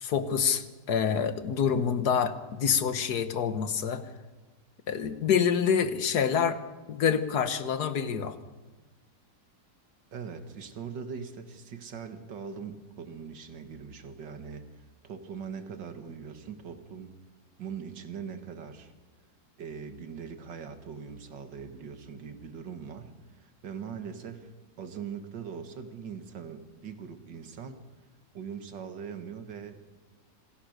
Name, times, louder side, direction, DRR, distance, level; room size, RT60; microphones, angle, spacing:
voice 1, 0.0-4.0 4.9-6.6 6.9-8.4, left 7 dB, 60° left, 11 dB, 1.7 m, -27 dB
voice 2, 10.1-14.7 15.0-17.1 17.6-18.9 19.6-24.5 24.8-27.8 28.3-29.8, right 6 dB, 75° right, 8 dB, 2.3 m, -41 dB
27.0 x 16.0 x 6.7 m, 1.2 s
omnidirectional pair, 1.9 m